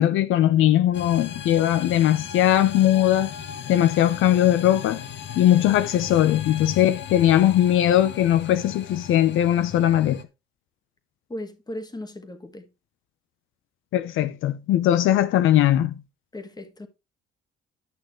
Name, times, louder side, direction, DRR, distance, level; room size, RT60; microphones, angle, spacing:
voice 1, 0.0-3.3 3.7-5.0 5.4-10.2 13.9-15.9, left 12 dB, 85° left, 0.7 m, -20 dB
sound 1, 0.9-10.2, left 8 dB, 65° left, 1.1 m, -37 dB
voice 2, 11.3-12.7 16.3-16.9, left 1 dB, 20° left, 1.8 m, -37 dB
11.5 x 6.3 x 3.1 m
cardioid pair, 90°, 20 cm